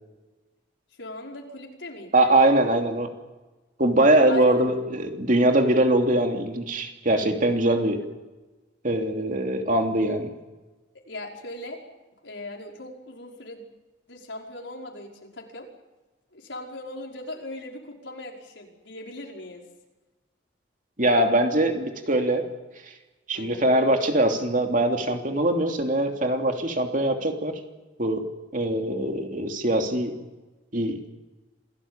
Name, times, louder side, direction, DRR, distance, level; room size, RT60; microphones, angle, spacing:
voice 1, 1.0-2.4 4.3-4.7 11.1-11.8 12.2-13.6 14.1-15.7 16.3-19.6 23.3-23.7, left 1 dB, 70° left, 1 dB, 5.4 m, -39 dB
voice 2, 2.1-3.1 3.8-8.0 8.8-10.3 21.0-22.4 23.3-27.6 28.0-28.3 28.5-30.2 30.7-31.0, right 1 dB, 45° right, 4 dB, 3.0 m, -22 dB
27.5 x 18.5 x 9.0 m, 1.2 s
head